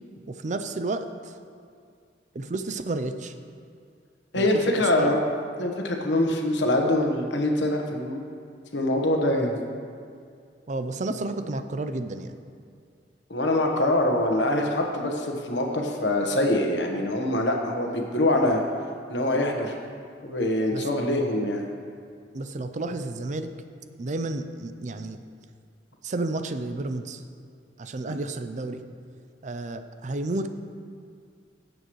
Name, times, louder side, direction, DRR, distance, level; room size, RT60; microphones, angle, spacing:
voice 1, 0.3-1.3 2.3-3.3 4.3-4.5 5.0-5.1 10.7-12.4 20.7-20.9 22.3-23.5 24.0-25.2 26.0-27.2 27.8-28.8 29.4-30.5, right 2 dB, 40° right, 9 dB, 0.5 m, -31 dB
voice 2, 4.3-5.2 5.6-8.2 8.7-9.5 13.3-18.6 19.1-19.8 20.2-21.6, left 1 dB, 85° left, 2 dB, 1.3 m, -24 dB
16.5 x 7.9 x 3.2 m, 2.2 s
head